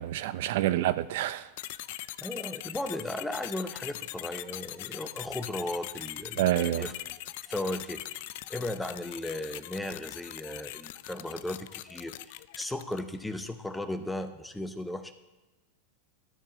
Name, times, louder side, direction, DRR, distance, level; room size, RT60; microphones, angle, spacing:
voice 1, 0.0-1.5 6.4-6.9, right 14 dB, 65° right, 0.5 m, -27 dB
sound 1, 1.6-13.2, left 15 dB, 65° left, 0.4 m, -41 dB
voice 2, 2.2-6.9 7.4-15.1, left 1 dB, 5° left, 0.8 m, -36 dB
13.0 x 4.6 x 6.0 m
hypercardioid pair, 115°, 0 cm